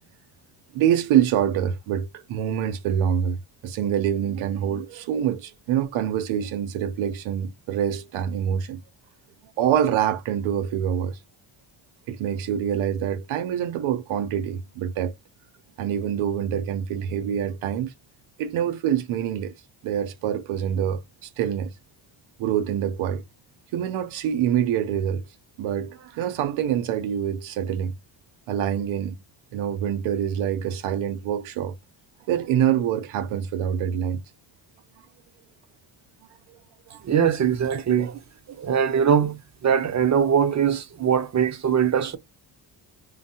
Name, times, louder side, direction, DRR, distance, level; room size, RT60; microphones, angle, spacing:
voice 1, 0.7-3.4 3.6-8.8 9.6-11.2 12.1-15.1 15.8-17.9 18.4-19.5 19.8-21.7 22.4-23.2 23.7-25.2 25.6-27.9 28.5-29.1 29.5-31.7 32.3-34.2 36.9-37.0, right 9 dB, 90° right, 0.6 m, -25 dB
voice 2, 37.0-38.2 38.5-42.2, right 8 dB, 40° right, 0.5 m, -22 dB
3.2 x 2.0 x 2.7 m
cardioid pair, 95°, 47 cm